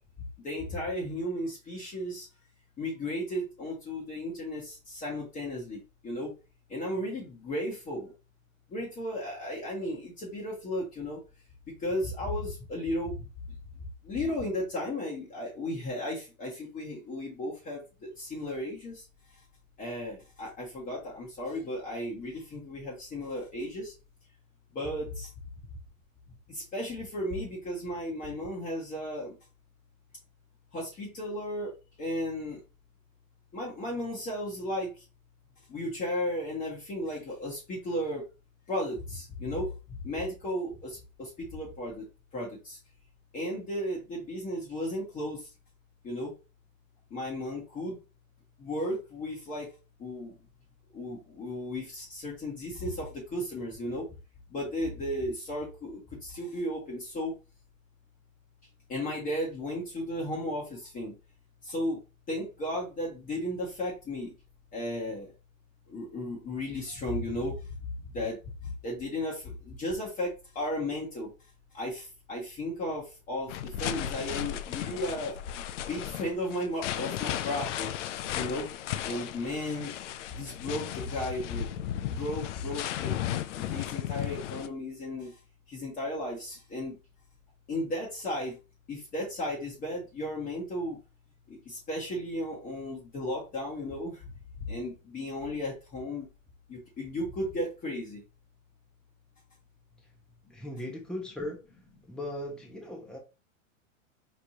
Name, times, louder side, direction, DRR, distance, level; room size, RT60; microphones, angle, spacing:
voice 1, 0.4-2.3 2.8-6.3 6.7-8.1 8.7-11.2 11.8-13.1 14.0-19.0 19.8-23.9 24.7-25.3 26.5-29.3 30.7-31.7 32.0-32.6 33.5-34.9 35.7-38.2 38.7-39.7 40.0-42.0 42.3-42.8 43.3-45.4 46.0-46.3 47.1-48.0 48.6-49.7 50.0-50.3 50.9-54.0 54.5-57.3 58.9-61.1 61.6-62.0 62.3-64.3 64.7-65.3 65.9-67.5 68.1-68.4 68.8-70.3 70.5-71.3 71.7-75.3 75.9-77.9 78.3-78.7 79.0-79.9 80.3-81.7 82.1-83.1 83.6-85.3 85.7-87.0 87.7-88.6 88.9-91.0 91.5-94.2 94.6-96.3 96.7-98.2, left 1 dB, 20° left, -4 dB, 1.3 m, -34 dB
sound 1, 73.5-84.7, left 11 dB, 65° left, 0.6 m, -35 dB
voice 2, 100.5-101.6 102.1-103.2, left 1 dB, ahead, 0 dB, 0.9 m, -38 dB
4.4 x 3.2 x 2.8 m, 0.31 s
hypercardioid pair, 125°, 40 cm